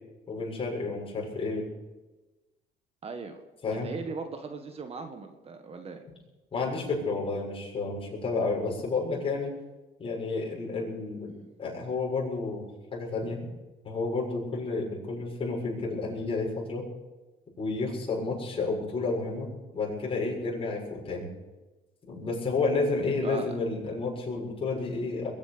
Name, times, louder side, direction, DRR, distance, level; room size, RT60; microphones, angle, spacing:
voice 1, 0.3-1.7 3.6-3.9 6.5-9.5 10.0-12.6 12.9-13.5 13.8-16.8 17.6-21.3 22.1-25.3, left 3 dB, 35° left, -2 dB, 7.2 m, -31 dB
voice 2, 3.0-3.4 3.7-6.0 23.2-23.5, right 4 dB, 35° right, 6 dB, 1.7 m, -38 dB
21.5 x 9.7 x 6.9 m, 1.1 s
cardioid pair, 110°, 17 cm